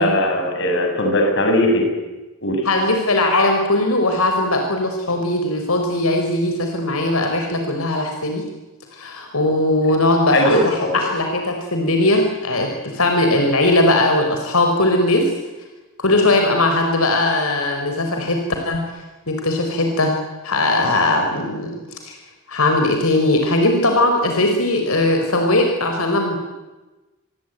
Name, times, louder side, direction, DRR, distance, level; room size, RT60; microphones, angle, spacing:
voice 1, 0.0-1.9 2.4-2.6 10.3-11.0, left 1 dB, 60° left, 3 dB, 7.3 m, -18 dB
voice 2, 2.6-8.4 8.9-15.3 16.0-18.8 19.3-20.1 20.4-22.2 22.5-26.4, left 2 dB, 90° left, 4 dB, 4.8 m, -19 dB
27.5 x 22.5 x 9.3 m, 1.1 s
head